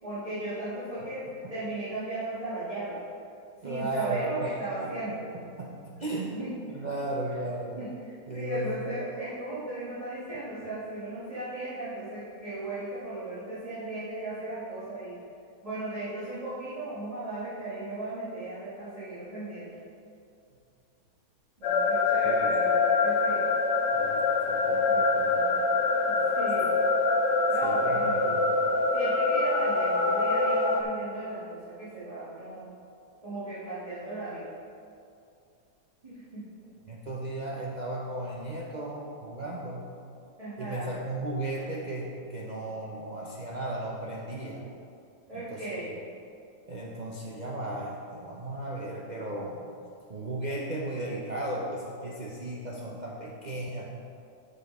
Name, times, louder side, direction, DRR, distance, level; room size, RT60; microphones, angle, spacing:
voice 1, 0.0-3.0 3.6-5.2 6.3-6.5 7.8-15.2 15.6-19.8 21.6-23.4 24.8-25.0 26.1-26.7 27.5-28.4 28.9-32.7 33.2-34.5 36.0-36.5 40.4-40.9 45.3-45.9, right 2 dB, 20° right, -14 dB, 2.1 m, -36 dB
voice 2, 3.6-4.5 4.8-6.4 6.7-7.8 8.3-8.8 22.2-22.5 23.9-25.7 27.6-28.5 36.9-39.9 40.6-44.6 45.3-45.6 46.7-49.7 50.1-53.9, right 1 dB, 80° right, -4 dB, 0.4 m, -35 dB
sound 1, 21.6-30.8, left 3 dB, 80° left, 1.4 m, -25 dB
6.7 x 5.9 x 5.3 m, 2.5 s
omnidirectional pair, 1.9 m